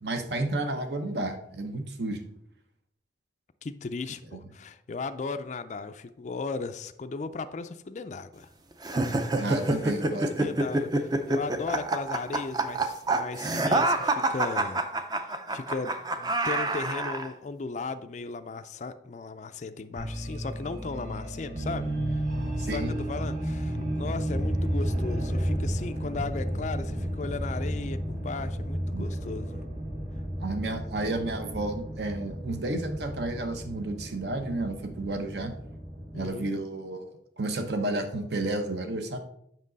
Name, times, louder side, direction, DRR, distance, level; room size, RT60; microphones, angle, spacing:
voice 1, 0.0-2.2 4.3-4.4 9.4-10.5 22.6-22.9 28.9-29.2 30.4-35.5 36.1-39.2, right 2 dB, 65° right, 7 dB, 0.9 m, -32 dB
voice 2, 3.6-8.5 9.3-9.5 10.1-14.8 15.3-22.2 22.6-29.6 36.1-36.5, left 4 dB, 40° left, 9 dB, 0.3 m, -36 dB
sound 1, 8.8-17.3, right 2 dB, 20° right, 0.5 m, -27 dB
sound 2, 20.0-36.3, equal, 40° right, 3.2 m, -32 dB
7.4 x 5.9 x 3.9 m, 0.74 s
head